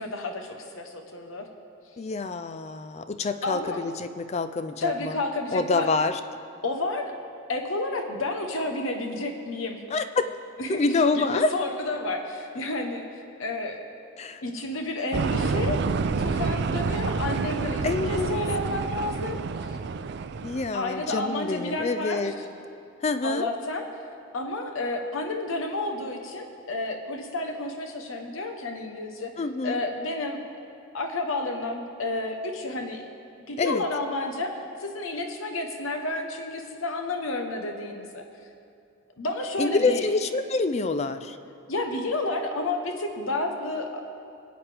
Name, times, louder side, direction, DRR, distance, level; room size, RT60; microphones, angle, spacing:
voice 1, 0.0-1.5 3.4-3.8 4.8-5.9 6.6-7.1 7.5-9.8 10.6-10.8 11.1-13.0 13.4-13.8 14.4-15.8 16.2-19.4 20.7-22.3 23.2-23.8 24.3-29.3 29.6-30.4 30.9-33.0 33.5-34.5 34.8-38.2 39.2-40.1 41.7-44.1, left 2 dB, 75° left, 5 dB, 1.0 m, -31 dB
voice 2, 2.0-5.2 5.5-6.2 9.9-10.3 10.7-11.5 14.2-14.4 17.8-18.4 20.4-22.3 23.0-23.5 29.4-29.8 33.6-33.8 39.6-41.4, left 3 dB, 30° left, 11 dB, 0.3 m, -26 dB
sound 1, 15.1-20.7, right 4 dB, 55° right, 0.4 m, -28 dB
20.5 x 8.7 x 3.4 m, 2.5 s
head